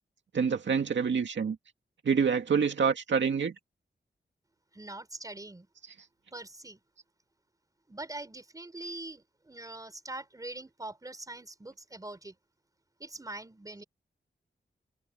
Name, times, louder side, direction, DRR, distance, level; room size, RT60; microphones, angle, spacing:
voice 1, 0.3-1.6 2.0-3.5, right 6 dB, 85° right, 2.1 m, -26 dB
voice 2, 4.7-5.7 6.3-6.8 7.9-12.3 13.0-13.8, right 2 dB, 20° right, 4.9 m, -43 dB
wide cardioid pair, 150°, 18 cm